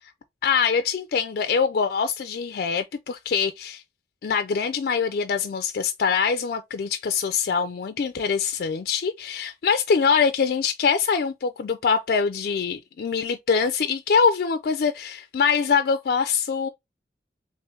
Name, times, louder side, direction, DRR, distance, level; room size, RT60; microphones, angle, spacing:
voice 1, 0.4-3.8 4.2-16.7, left 6 dB, 55° left, 0.3 m, -24 dB
3.1 x 3.0 x 3.3 m
head